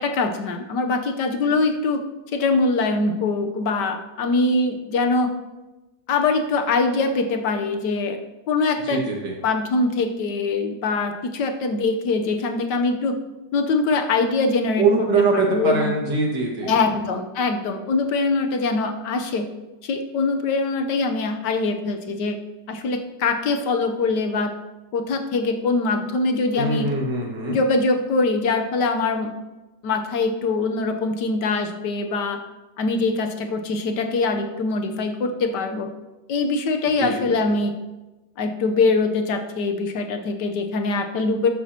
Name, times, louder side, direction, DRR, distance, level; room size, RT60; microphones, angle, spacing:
voice 1, 0.0-2.0 2.3-5.3 6.1-8.2 8.5-9.0 9.4-13.1 13.5-14.9 15.3-15.9 16.6-19.5 19.8-22.4 22.7-24.5 24.9-26.9 27.5-29.3 29.8-32.4 32.8-35.9 36.3-37.7 38.4-41.5, left 3 dB, 85° left, 6 dB, 1.5 m, -23 dB
voice 2, 8.8-9.3 14.8-17.0 26.5-27.6 37.0-37.4, right 3 dB, 90° right, -1 dB, 2.6 m, -23 dB
13.0 x 8.6 x 2.9 m, 1.1 s
omnidirectional pair, 1.8 m